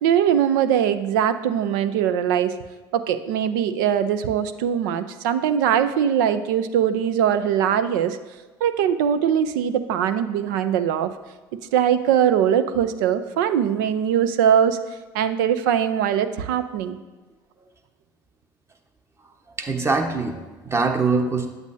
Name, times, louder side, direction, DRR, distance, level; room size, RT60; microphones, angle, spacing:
voice 1, 0.0-2.5 2.9-8.2 8.6-11.1 11.7-14.8 15.1-17.0, right 9 dB, 75° right, 11 dB, 0.5 m, -21 dB
voice 2, 19.6-21.5, right 4 dB, 25° right, 4 dB, 1.1 m, -23 dB
8.4 x 8.0 x 2.7 m, 1.2 s
hypercardioid pair, 70°, 11 cm